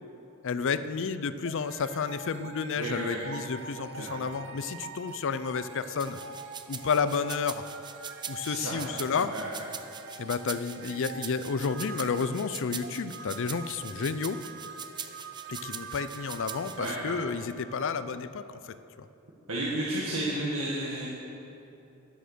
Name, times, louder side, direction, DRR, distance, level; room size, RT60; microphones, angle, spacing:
voice 1, 0.4-6.2 6.7-7.6 8.3-9.3 10.2-14.4 15.5-19.1, left 5 dB, 60° left, 13 dB, 0.5 m, -31 dB
sound 1, 1.5-18.6, right 5 dB, 55° right, 0.8 m, -45 dB
voice 2, 2.8-3.3 4.0-4.1 8.4-9.5 16.8-17.2 19.5-21.1, right 1 dB, 75° right, -6 dB, 1.8 m, -33 dB
sound 2, 6.0-16.9, right 7 dB, 20° right, 0.5 m, -42 dB
11.0 x 10.0 x 6.7 m, 2.9 s
head